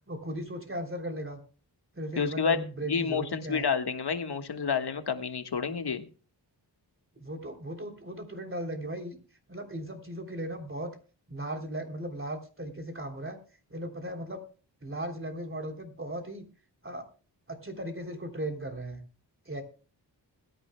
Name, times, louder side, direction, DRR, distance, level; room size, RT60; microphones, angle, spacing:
voice 1, 0.1-1.4 1.9-3.7 7.2-9.2 9.5-10.9 11.3-13.4 13.7-14.4 14.8-16.4 16.8-17.1 17.5-19.0 19.4-19.6, right 1 dB, 30° right, 3 dB, 3.3 m, -37 dB
voice 2, 2.2-2.6 2.9-6.0, left 6 dB, 60° left, 7 dB, 1.5 m, -29 dB
21.0 x 10.0 x 2.2 m, 0.38 s
cardioid pair, 55°, 44 cm